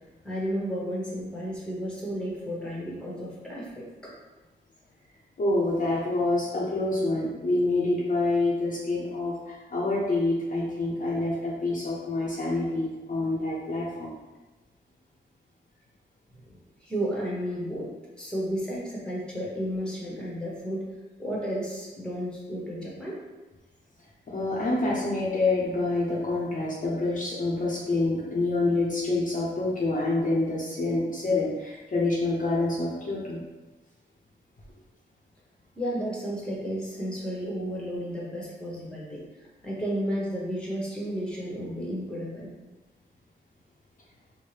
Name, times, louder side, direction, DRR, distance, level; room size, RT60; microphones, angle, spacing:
voice 1, 0.2-4.1 16.4-17.9 18.1-20.8 21.2-23.2 35.7-42.5, equal, 5° left, -5 dB, 1.0 m, -33 dB
voice 2, 5.4-9.3 9.7-14.1 24.3-33.4, left 2 dB, 45° left, -5 dB, 0.6 m, -27 dB
4.5 x 2.1 x 3.2 m, 1.2 s
wide cardioid pair, 120°, 19 cm